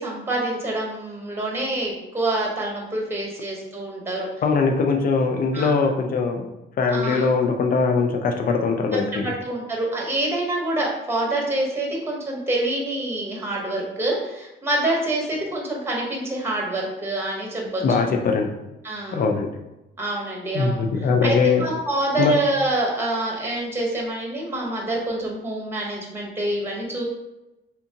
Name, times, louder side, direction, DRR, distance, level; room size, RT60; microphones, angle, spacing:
voice 1, 0.0-4.3 5.5-5.8 6.9-7.3 9.1-17.8 18.8-19.3 20.0-20.8 21.2-27.0, right 1 dB, 10° right, -2 dB, 1.0 m, -26 dB
voice 2, 4.4-6.4 6.8-9.3 17.8-18.5 19.1-19.5 20.5-21.7 22.2-22.3, left 4 dB, 45° left, 4 dB, 0.5 m, -21 dB
3.3 x 2.8 x 2.8 m, 0.95 s
cardioid pair, 90°, 20 cm